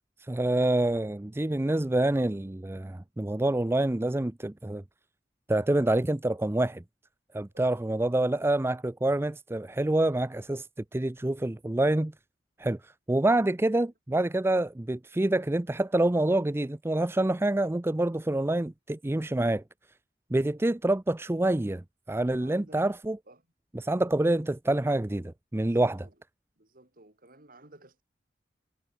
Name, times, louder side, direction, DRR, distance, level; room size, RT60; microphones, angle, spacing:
voice 1, 0.2-4.8 5.5-6.8 7.3-10.7 10.9-12.1 12.6-19.6 20.3-23.2 23.7-26.1, right 1 dB, 15° right, 0.5 m, -27 dB
voice 2, 7.5-7.9 22.4-22.8 23.3-23.4 25.6-26.1 26.6-28.0, right 1 dB, 50° right, 6.6 m, -55 dB
head